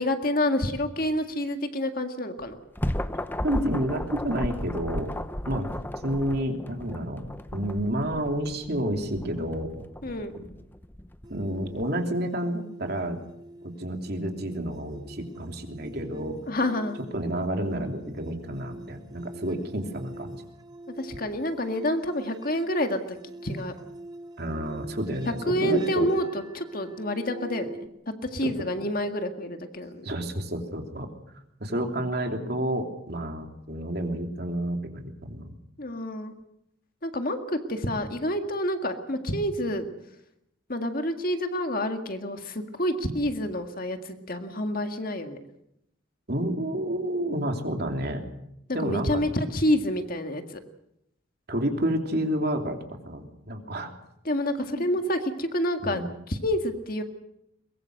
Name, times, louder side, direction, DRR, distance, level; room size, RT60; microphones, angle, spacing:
voice 1, 0.0-2.6 10.0-10.3 16.5-17.0 21.0-23.2 23.4-23.8 25.5-27.8 28.2-30.1 35.8-36.3 37.0-39.9 40.7-45.4 48.8-50.6 54.3-57.0, left 1 dB, 45° left, 6 dB, 1.9 m, -28 dB
sound 1, 2.4-11.9, left 1 dB, 10° left, 0.8 m, -35 dB
voice 2, 3.4-5.1 5.4-5.7 6.0-7.2 7.5-9.7 10.4-10.5 11.3-13.2 13.6-16.4 17.1-20.4 24.4-26.1 28.4-28.7 30.0-31.1 31.6-35.5 46.3-48.2 48.7-49.2 51.5-52.8 53.0-53.9 54.7-54.9 55.8-56.1, right 1 dB, 50° right, 4 dB, 3.0 m, -30 dB
sound 2, 11.2-27.9, right 1 dB, 20° right, 1.0 m, -45 dB
22.5 x 21.0 x 6.6 m, 0.81 s
head